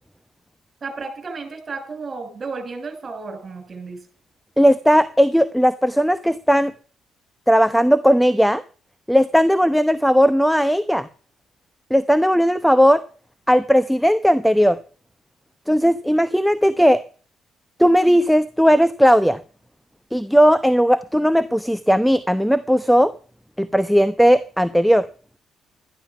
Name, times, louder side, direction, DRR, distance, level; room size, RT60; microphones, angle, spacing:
voice 1, 0.8-4.0, right 4 dB, 40° right, 7 dB, 6.2 m, -33 dB
voice 2, 4.6-6.7 7.5-8.6 9.1-11.1 11.9-13.0 13.5-14.8 15.7-17.0 17.8-19.4 20.1-23.1 23.6-25.1, equal, ahead, 14 dB, 0.8 m, -17 dB
13.0 x 11.5 x 5.9 m, 0.40 s
hypercardioid pair, 50°, 0 cm